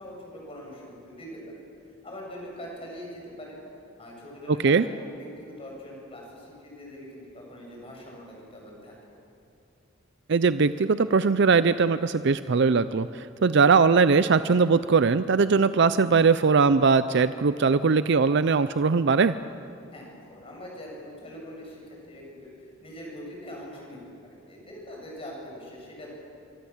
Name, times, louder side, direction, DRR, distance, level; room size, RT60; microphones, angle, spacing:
voice 1, 0.0-1.6 2.0-3.6 4.0-8.9 19.9-26.1, equal, 30° left, -2 dB, 7.9 m, -42 dB
voice 2, 10.3-19.4, right 5 dB, 60° right, 13 dB, 0.5 m, -20 dB
25.5 x 23.5 x 7.3 m, 2.5 s
head